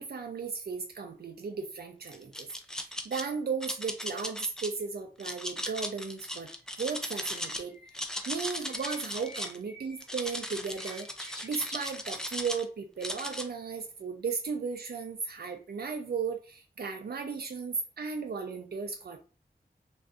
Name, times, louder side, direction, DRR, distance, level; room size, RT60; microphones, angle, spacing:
voice 1, 0.0-6.5 6.8-7.8 8.3-19.2, right 5 dB, 80° right, 4 dB, 0.4 m, -35 dB
sound 1, 2.1-3.2 3.6-4.7 5.2-7.6 7.9-9.6 10.0-12.6 13.0-13.5, left 1 dB, 5° left, 0.4 m, -37 dB
Bird, 6.2-12.5, equal, 65° left, 1.0 m, -51 dB
2.5 x 2.4 x 3.5 m, 0.35 s
wide cardioid pair, 65°, 16 cm